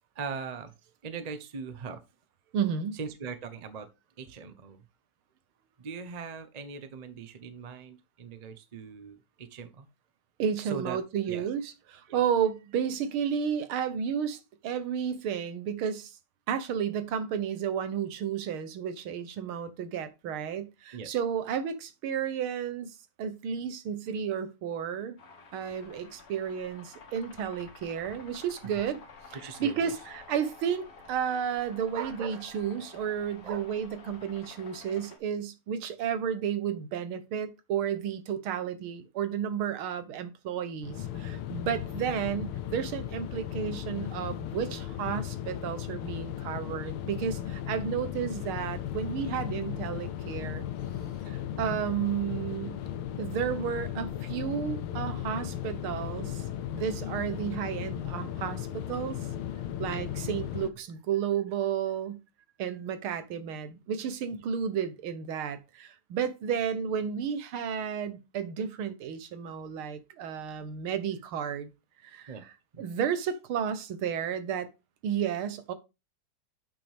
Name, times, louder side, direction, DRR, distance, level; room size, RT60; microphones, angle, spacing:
voice 1, 0.1-0.7 1.0-2.0 2.9-3.9 4.2-4.8 5.8-9.9 10.6-11.0 11.3-11.5 12.1-12.2 20.9-21.2 29.3-29.9 31.9-32.7 33.4-33.7 72.2-72.4 72.7-72.8, right 5 dB, 45° right, 0.5 m, -40 dB
voice 2, 2.5-3.0 10.4-16.2 16.5-25.2 25.5-29.0 29.3-50.6 51.3-52.8 53.2-56.4 56.7-59.2 59.8-62.2 62.6-71.7 72.0-72.5 72.8-74.7 75.0-75.7, right 8 dB, 85° right, 1.9 m, -32 dB
sound 1, 25.2-35.2, left 4 dB, 60° left, 2.0 m, -51 dB
sound 2, 40.8-60.7, left 11 dB, 80° left, 1.6 m, -36 dB
8.9 x 6.0 x 3.5 m
omnidirectional pair, 2.3 m